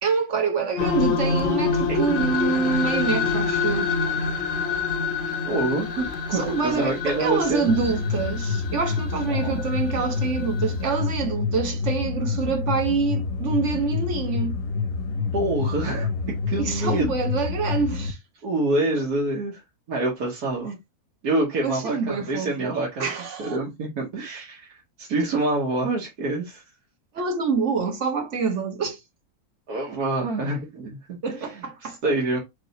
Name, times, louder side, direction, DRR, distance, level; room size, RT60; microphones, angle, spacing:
voice 1, 0.0-3.9 6.3-14.5 16.6-18.2 21.6-23.6 27.1-29.0 31.2-32.0, right 5 dB, 55° right, 1.2 m, -26 dB
sound 1, 0.8-10.9, left 5 dB, 50° left, 0.7 m, -27 dB
voice 2, 5.5-7.7 9.4-9.6 15.3-17.0 18.4-19.6 19.9-20.8 21.2-23.1 23.4-24.7 25.0-26.6 29.7-32.4, right 2 dB, 80° right, 1.7 m, -26 dB
sound 2, 7.7-18.1, left 4 dB, 70° left, 1.0 m, -27 dB
3.3 x 3.2 x 3.8 m
omnidirectional pair, 1.6 m